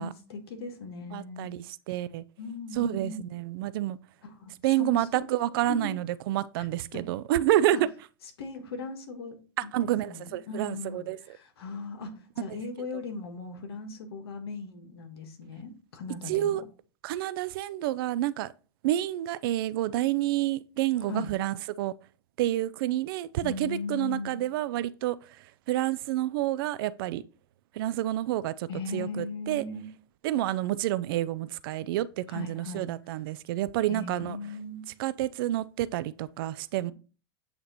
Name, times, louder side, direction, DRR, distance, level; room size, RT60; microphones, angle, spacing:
voice 1, 0.0-1.5 2.4-3.3 4.2-5.2 5.7-5.9 6.6-6.7 6.9-7.0 7.7-7.8 8.4-9.4 9.6-16.6 21.1-21.3 23.4-24.4 28.7-29.9 32.3-32.9 33.9-34.8, left 3 dB, 80° left, 1.5 m, -38 dB
voice 2, 1.1-2.2 2.7-4.0 4.6-7.9 9.6-11.2 16.3-16.6 17.0-18.5 18.8-21.9 22.4-25.2 25.7-27.2 27.8-29.6 30.2-34.4 35.0-36.9, right 14 dB, 65° right, 0.4 m, -29 dB
8.4 x 2.8 x 4.0 m
hypercardioid pair, 110°, 13 cm